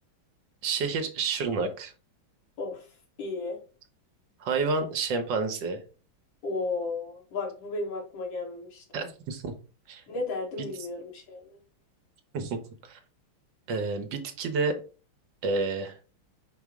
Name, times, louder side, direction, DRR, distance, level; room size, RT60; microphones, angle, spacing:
voice 1, 0.6-1.9 4.4-5.8 8.9-9.5 9.9-10.0 12.3-13.0 13.7-14.7 15.4-16.0, right 4 dB, 65° right, 7 dB, 1.4 m, -29 dB
voice 2, 3.2-3.6 6.4-9.0 10.1-11.6, left 3 dB, 65° left, -1 dB, 2.1 m, -34 dB
5.6 x 2.0 x 4.7 m, 0.36 s
omnidirectional pair, 2.3 m